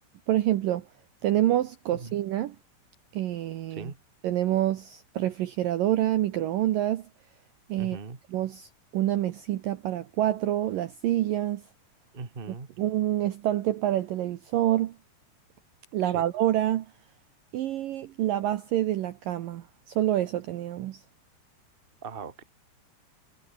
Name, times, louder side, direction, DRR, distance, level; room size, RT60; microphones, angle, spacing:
voice 1, 0.3-0.9 1.2-2.6 3.1-3.9 4.2-7.1 7.7-8.0 8.3-11.6 12.8-15.0 15.9-16.9 17.5-21.0, right 13 dB, 75° right, 2.2 m, -27 dB
voice 2, 7.8-8.2 12.1-12.7 16.0-16.2 22.0-22.4, right 4 dB, 25° right, 1.3 m, -39 dB
omnidirectional pair, 5.1 m